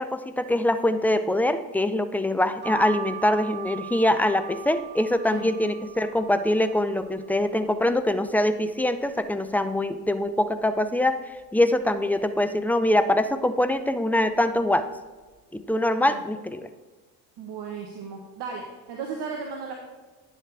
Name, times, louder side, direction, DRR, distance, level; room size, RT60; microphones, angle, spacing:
voice 1, 0.0-11.2 11.5-14.8 15.5-16.7, left 1 dB, 5° left, 11 dB, 0.4 m, -23 dB
sound 1, 2.6-8.3 8.8-9.5 9.9-10.0 10.2-11.3 11.8-12.2 12.9-13.3 14.0-14.3 14.6-14.8, right 11 dB, 20° right, 2.7 m, -42 dB
voice 2, 17.4-19.7, right 5 dB, 55° right, 1 dB, 1.3 m, -35 dB
10.0 x 7.3 x 3.4 m, 1.3 s
hypercardioid pair, 55°, 50 cm